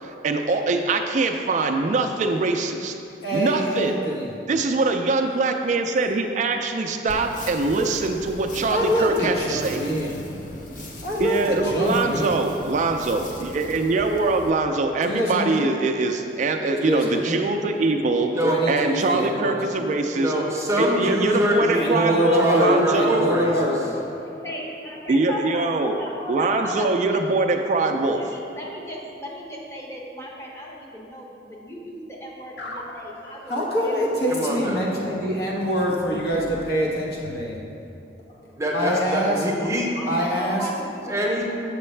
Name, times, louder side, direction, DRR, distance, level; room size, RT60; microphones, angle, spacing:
voice 1, 0.0-2.9 3.3-3.9 4.5-9.8 11.2-18.3 18.7-20.3 20.8-23.3 25.1-26.0 26.3-28.2, right 3 dB, 45° right, 5 dB, 0.3 m, -23 dB
voice 2, 3.2-4.3 8.7-10.4 11.0-12.4 15.0-15.6 16.8-17.4 18.4-19.6 21.7-23.8 33.5-37.5 38.4-39.4 40.1-40.7, equal, 60° left, -4 dB, 1.2 m, -25 dB
sound 1, 7.1-14.5, left 1 dB, 45° left, 0.6 m, -39 dB
voice 3, 20.1-23.5 34.3-34.8 38.6-39.9 41.1-41.4, right 1 dB, 15° right, -2 dB, 0.7 m, -23 dB
voice 4, 23.8-27.2 28.1-34.1 34.6-34.9 39.6-39.7 40.0-41.1, equal, 15° left, -2 dB, 0.9 m, -36 dB
sound 2, 32.6-37.5, left 1 dB, 80° left, 0.7 m, -39 dB
6.9 x 6.5 x 3.2 m, 2.7 s
head